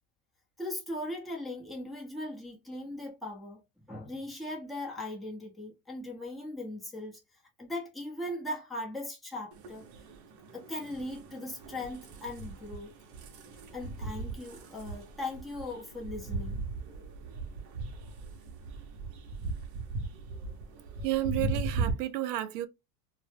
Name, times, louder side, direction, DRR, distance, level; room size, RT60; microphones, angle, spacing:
voice 1, 0.6-3.6 3.9-7.2 7.6-9.8 10.5-12.9 13.7-16.6, left 1 dB, ahead, 0.6 m, -39 dB
sound 1, 9.5-21.9, right 3 dB, 40° right, 0.7 m, -38 dB
voice 2, 21.0-22.7, right 14 dB, 85° right, 0.6 m, -31 dB
2.0 x 2.0 x 3.2 m
supercardioid pair, 120°, 46 cm